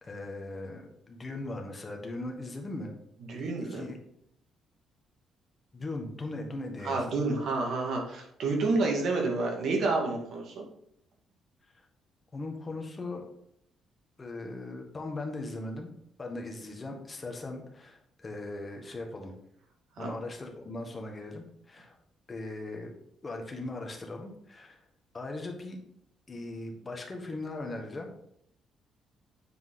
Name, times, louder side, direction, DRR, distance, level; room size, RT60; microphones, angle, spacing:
voice 1, 0.0-2.9 3.3-4.0 5.7-7.2 11.7-11.8 12.3-13.2 14.2-15.9 16.2-19.3 20.0-21.9 22.3-22.9 23.2-24.8 25.1-25.8 26.3-28.1, left 2 dB, 30° left, 2 dB, 1.6 m, -39 dB
voice 2, 3.3-3.8 6.8-10.6 20.0-20.1, right 3 dB, 70° right, 0 dB, 1.9 m, -29 dB
8.0 x 4.5 x 3.8 m, 0.73 s
cardioid pair, 90°, 0 cm